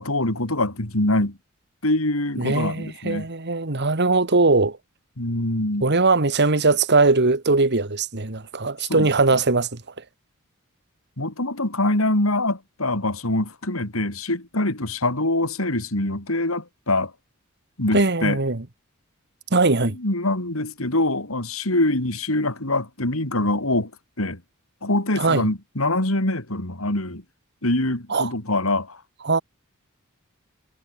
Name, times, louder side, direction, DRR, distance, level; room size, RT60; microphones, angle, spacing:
voice 1, 0.0-1.4 1.8-3.3 5.2-5.9 8.9-9.1 11.2-17.1 17.8-18.4 19.9-23.9 24.2-24.4 24.8-27.2 27.6-29.0, left 2 dB, 70° left, 4.3 m, -24 dB
voice 2, 2.4-4.8 5.8-9.7 17.9-18.6 19.5-20.0 25.2-25.4 28.1-28.3 29.2-29.4, right 3 dB, 55° right, 1.9 m, -20 dB
head